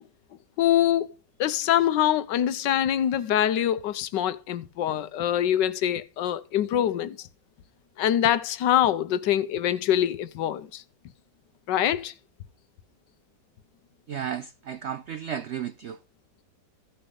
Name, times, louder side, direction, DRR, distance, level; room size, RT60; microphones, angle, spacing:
voice 1, 0.6-1.1 1.4-7.3 8.0-10.8 11.7-12.1, left 11 dB, 90° left, 1.4 m, -24 dB
voice 2, 14.1-16.0, right 8 dB, 80° right, 0.6 m, -33 dB
15.5 x 7.0 x 3.8 m
omnidirectional pair, 1.9 m